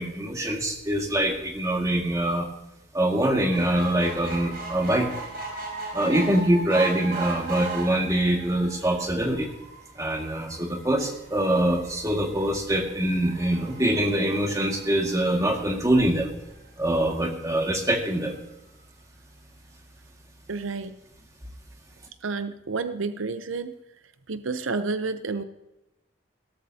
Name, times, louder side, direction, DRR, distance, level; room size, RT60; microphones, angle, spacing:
voice 1, 0.0-2.5 2.9-5.1 5.9-9.5 10.0-16.3 16.8-18.3, right 1 dB, 15° right, 1 dB, 1.9 m, -24 dB
sound 1, 3.5-16.1 16.7-16.8 17.1-17.2 17.4-17.5, right 4 dB, 50° right, 4.1 m, -38 dB
voice 2, 20.5-21.0 22.2-23.7 24.3-25.4, right 4 dB, 80° right, 11 dB, 0.7 m, -30 dB
17.5 x 13.0 x 2.8 m, 0.94 s
head